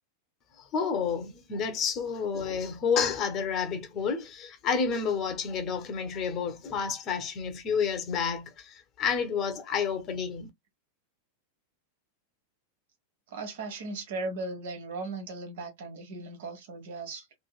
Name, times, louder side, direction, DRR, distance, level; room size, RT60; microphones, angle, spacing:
voice 1, 0.6-10.5, left 6 dB, 35° left, 1.0 m, -30 dB
voice 2, 13.3-17.3, right 3 dB, 55° right, 1.3 m, -37 dB
3.3 x 2.9 x 2.4 m
figure-of-eight pair, 90°, 0 cm